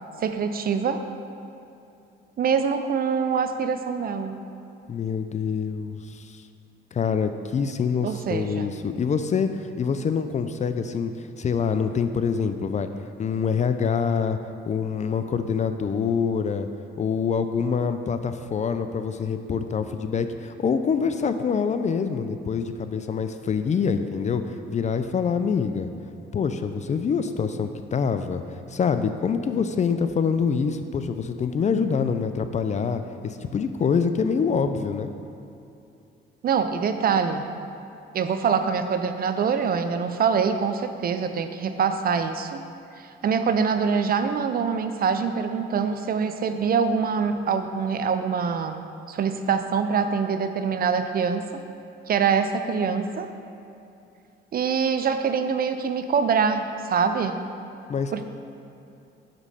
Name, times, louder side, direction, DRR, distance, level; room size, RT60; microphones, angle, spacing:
voice 1, 0.2-1.0 2.4-4.4 8.0-8.7 36.4-37.5 38.1-42.6 43.0-48.8 49.1-51.6 52.1-53.3 54.5-57.4 58.1-58.2, right 6 dB, 50° right, 8 dB, 0.5 m, -24 dB
voice 2, 4.9-6.4 6.9-11.1 11.4-12.9 13.2-14.4 14.7-16.7 17.0-24.4 24.7-25.9 26.3-28.4 28.7-35.1 57.9-58.2, left 6 dB, 35° left, 9 dB, 0.4 m, -25 dB
6.3 x 5.2 x 5.5 m, 2.7 s
cardioid pair, 90°, 20 cm